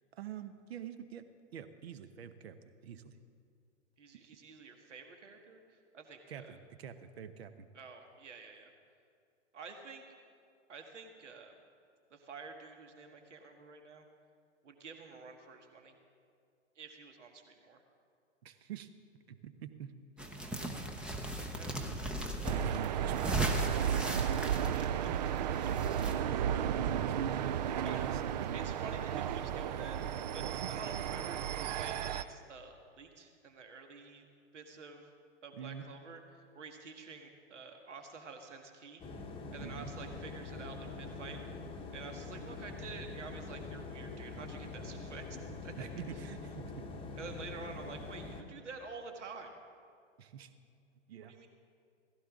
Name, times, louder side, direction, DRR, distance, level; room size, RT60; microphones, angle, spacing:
voice 1, 0.0-2.6 2.8-3.1 6.3-7.7 18.4-18.9 19.3-19.9 21.9-24.0 25.7-27.4 27.6-28.5 30.5-30.7 35.5-35.9 39.6-39.9 45.8-46.9 50.2-50.5 51.1-51.4, right 8 dB, 55° right, 11 dB, 1.0 m, -46 dB
voice 2, 4.0-6.6 7.7-8.7 9.5-10.0 10.7-11.5 12.1-14.0 14.6-15.9 16.7-17.8 21.5-21.8 24.7-25.1 27.8-28.1 28.5-30.0 30.3-34.3 34.5-35.1 35.4-39.0 39.5-41.4 41.9-45.9 47.1-49.6 51.2-51.5, right 4 dB, 70° right, 4 dB, 1.8 m, -49 dB
sound 1, 20.2-26.1, right 1 dB, 5° right, 0.6 m, -37 dB
sound 2, 22.4-32.2, right 9 dB, 35° right, 0.5 m, -34 dB
sound 3, 39.0-48.4, left 3 dB, 15° left, 1.0 m, -44 dB
16.5 x 16.0 x 3.7 m, 2.3 s
figure-of-eight pair, 115°, 37 cm